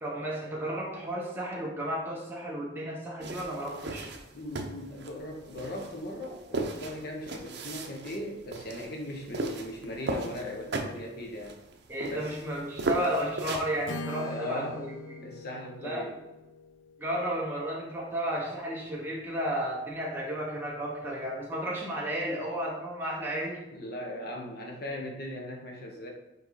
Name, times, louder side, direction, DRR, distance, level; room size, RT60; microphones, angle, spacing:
voice 1, 0.0-4.1 11.9-15.3 15.8-16.1 17.0-23.6, right 1 dB, 10° right, -3 dB, 1.2 m, -33 dB
sound 1, 3.2-13.8, right 2 dB, 65° right, 0.7 m, -36 dB
voice 2, 4.3-11.5 12.1-12.3 14.2-14.8 15.2-16.2 23.7-26.1, left 1 dB, 60° left, 1 dB, 1.2 m, -38 dB
Acoustic guitar / Strum, 13.9-17.8, left 2 dB, 85° left, 0.6 m, -42 dB
5.4 x 4.7 x 4.1 m, 0.97 s
head